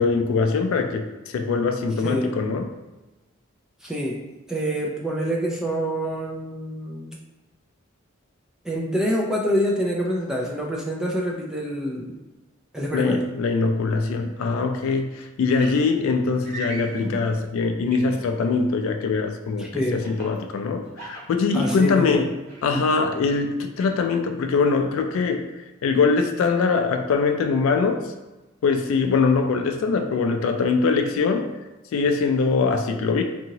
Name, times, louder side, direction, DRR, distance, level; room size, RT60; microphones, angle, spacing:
voice 1, 0.0-2.7 12.9-22.3 22.6-25.4 25.8-28.1 28.6-31.5 31.9-33.2, left 4 dB, 80° left, 5 dB, 0.3 m, -22 dB
voice 2, 3.8-4.2 4.5-7.2 8.6-12.2 12.7-13.2 19.6-20.0 21.5-22.2, equal, 5° right, -3 dB, 0.3 m, -26 dB
sound 1, 15.6-15.8 16.4-17.1 17.9-18.5 20.0-20.4 20.9-21.9 22.4-22.8, right 1 dB, 45° right, 1.2 m, -36 dB
2.8 x 2.7 x 2.7 m, 1.1 s
head